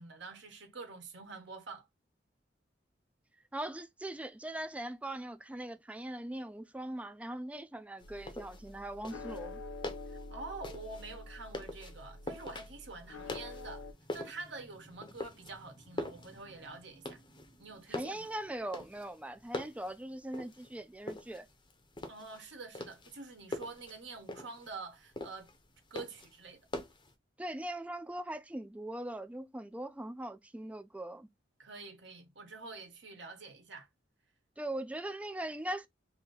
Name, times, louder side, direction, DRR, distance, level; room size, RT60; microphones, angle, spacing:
voice 1, 0.0-1.9 10.1-13.9 14.1-17.2 17.6-18.3 22.1-25.5 25.9-26.6 31.6-33.9, right 3 dB, 70° right, 1.2 m, -47 dB
voice 2, 3.5-9.6 17.9-21.5 27.4-31.3 34.6-35.9, right 1 dB, 5° right, 0.3 m, -40 dB
sound 1, 8.0-13.9, left 2 dB, 85° left, 0.6 m, -47 dB
sound 2, 8.0-27.1, left 1 dB, 25° left, 0.7 m, -45 dB
2.8 x 2.7 x 3.9 m
head